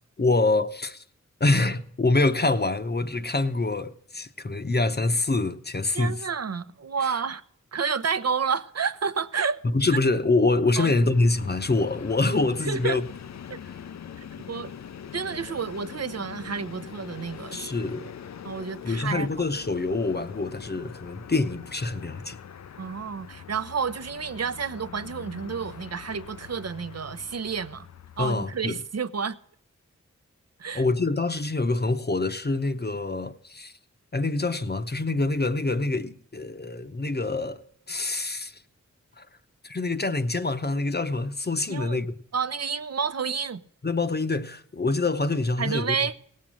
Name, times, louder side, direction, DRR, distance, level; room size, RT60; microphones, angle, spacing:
voice 1, 0.2-1.0 1.4-6.3 7.0-7.1 9.6-13.0 17.5-18.1 18.8-22.4 28.2-28.8 30.7-33.7 34.1-37.6 37.9-38.6 39.2-39.3 39.6-42.2 43.8-46.0, left 2 dB, 30° left, 0.8 m, -25 dB
voice 2, 5.9-7.4 7.7-9.6 10.8-11.1 12.6-13.0 13.5-13.6 14.5-14.7 15.1-17.9 18.4-19.3 22.8-27.9 28.2-29.3 30.6-30.8 41.7-42.0 42.3-43.6 45.6-46.1, right 6 dB, 55° right, 0.7 m, -30 dB
Train, 10.8-28.9, left 8 dB, 60° left, 0.5 m, -43 dB
17.5 x 7.5 x 6.2 m
cardioid pair, 45°, 31 cm